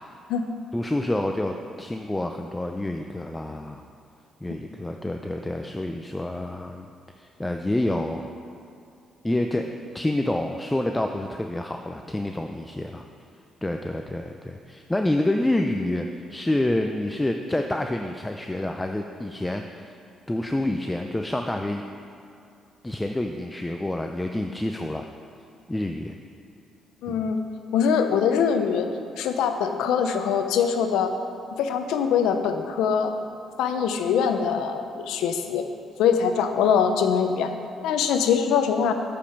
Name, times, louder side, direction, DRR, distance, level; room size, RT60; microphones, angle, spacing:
voice 1, 0.7-3.8 4.4-6.9 7.2-8.3 9.2-13.0 13.6-19.9 20.3-21.8 22.8-25.1 25.7-26.2 27.1-27.2, left 1 dB, 10° left, 4 dB, 0.4 m, -28 dB
voice 2, 27.0-27.4 27.7-28.9 29.2-31.1 31.5-33.1 33.6-35.6 36.0-37.5 37.8-38.9, left 7 dB, 90° left, 7 dB, 0.6 m, -23 dB
8.3 x 5.2 x 5.8 m, 2.6 s
cardioid pair, 90°, 0 cm